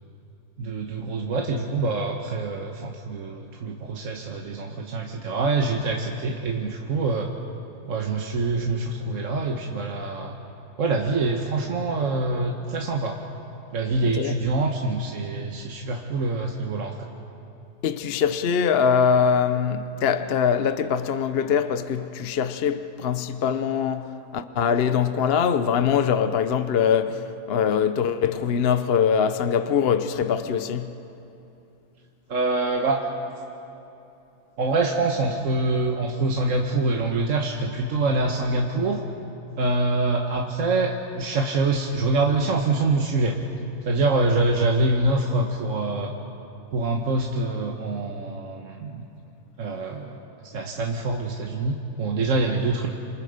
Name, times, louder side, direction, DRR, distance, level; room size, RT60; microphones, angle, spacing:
voice 1, 0.6-7.3 7.9-10.4 10.8-13.2 13.7-17.1 32.3-33.0 34.6-39.0 39.5-43.4 43.8-46.1 46.7-49.0 49.6-50.2 50.5-52.9, right 2 dB, 55° right, 1.5 m, -25 dB
voice 2, 14.0-14.3 17.8-30.9, left 7 dB, 50° left, 0.8 m, -23 dB
28.0 x 27.5 x 5.1 m
omnidirectional pair, 1.7 m